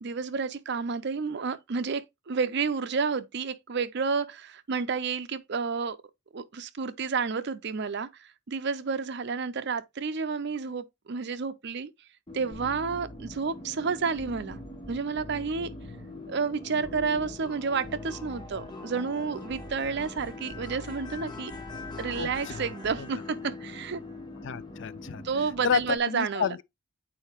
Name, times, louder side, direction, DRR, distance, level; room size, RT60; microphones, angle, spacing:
voice 1, 0.0-6.0 6.3-11.9 12.3-14.6 14.9-15.7 16.3-21.5 22.0-24.0 25.2-26.5, right 5 dB, 60° right, 0.6 m, -30 dB
sound 1, 12.3-26.0, left 2 dB, 20° left, 1.0 m, -43 dB
sound 2, 12.5-13.5 14.1-16.1 16.8-17.6 17.8-18.8 19.5-23.1, left 1 dB, 15° right, 1.2 m, -46 dB
voice 2, 22.1-22.7 23.0-23.1 24.4-25.3 25.6-26.6, left 6 dB, 65° left, 0.4 m, -30 dB
8.4 x 4.5 x 2.9 m
head